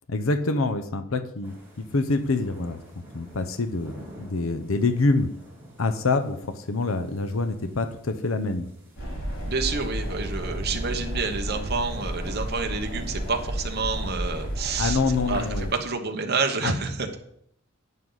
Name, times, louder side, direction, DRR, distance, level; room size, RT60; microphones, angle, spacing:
voice 1, 0.1-2.8 3.1-5.3 5.8-8.7 14.8-15.7 16.6-16.7, left 3 dB, 90° left, 11 dB, 0.8 m, -26 dB
sound 1, 1.4-15.8, equal, 10° right, 4.5 m, -52 dB
sound 2, 9.0-15.7, equal, 65° left, 5.3 m, -32 dB
voice 2, 9.5-15.0 15.3-17.2, right 4 dB, 50° right, 4 dB, 1.1 m, -28 dB
11.0 x 9.3 x 4.0 m, 0.70 s
head